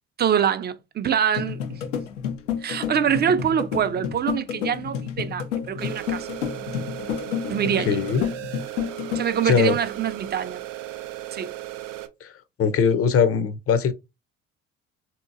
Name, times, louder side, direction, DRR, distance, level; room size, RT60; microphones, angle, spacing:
voice 1, 0.2-1.6 2.6-6.3 7.5-8.0 9.1-10.6 11.3-11.5, right 8 dB, 25° right, 0.5 m, -24 dB
sound 1, 1.3-9.2, left 8 dB, 80° left, 0.7 m, -30 dB
sound 2, 5.8-12.1, right 14 dB, 80° right, 0.6 m, -36 dB
voice 2, 7.8-8.2 9.4-9.8 12.2-12.3 12.6-13.9, left 6 dB, 40° left, 0.7 m, -21 dB
3.7 x 2.8 x 2.5 m
hypercardioid pair, 60°, 36 cm